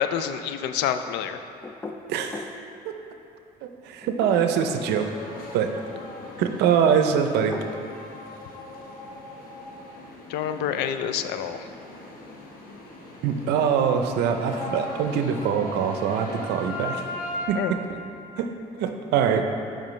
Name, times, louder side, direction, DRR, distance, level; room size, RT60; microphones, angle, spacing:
voice 1, 0.0-1.4 10.3-11.6 17.6-17.7, left 9 dB, 85° left, 9 dB, 0.4 m, -27 dB
sound 1, 1.6-2.6 4.0-4.8 6.9-7.8, left 3 dB, 10° left, 0.4 m, -38 dB
voice 2, 2.1-2.5 2.9-3.1 3.6-5.1 5.5-5.7 6.4-7.6 13.2-17.0 17.5-18.0 18.4-18.5 18.8-19.5, right 7 dB, 85° right, 6 dB, 0.5 m, -24 dB
sound 2, 4.3-17.5, left 2 dB, 60° left, 1.1 m, -39 dB
8.9 x 5.2 x 3.2 m, 2.6 s
cardioid pair, 110°, 17 cm